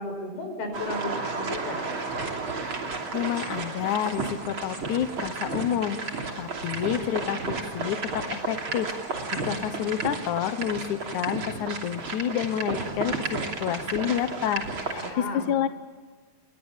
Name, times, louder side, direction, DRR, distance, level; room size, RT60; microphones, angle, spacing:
voice 1, 0.0-1.9 15.0-15.5, left 2 dB, 90° left, 6 dB, 7.0 m, -34 dB
sound 1, 0.7-15.1, right 3 dB, 35° right, 3.4 m, -32 dB
voice 2, 2.9-15.7, left 10 dB, 65° left, 11 dB, 2.1 m, -29 dB
29.5 x 22.5 x 7.4 m, 1.4 s
omnidirectional pair, 4.3 m